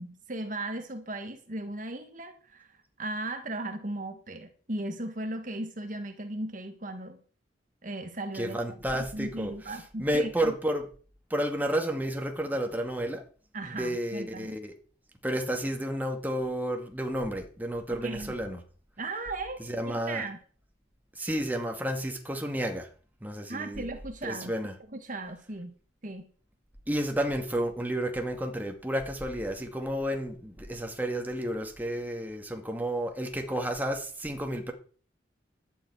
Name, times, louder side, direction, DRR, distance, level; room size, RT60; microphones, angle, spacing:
voice 1, 0.0-7.2 7.8-8.6 8.9-10.5 13.5-14.6 17.9-18.3 19.0-20.4 23.5-24.5 24.9-25.7 26.0-26.3, right 2 dB, 45° right, 1.6 m, -37 dB
voice 2, 8.3-9.5 10.0-10.8 11.3-13.2 13.7-14.7 15.2-18.6 19.7-20.2 21.2-22.9 23.2-23.9 24.2-24.7 26.9-34.7, right 1 dB, 10° right, 2.1 m, -31 dB
12.0 x 7.3 x 9.2 m
head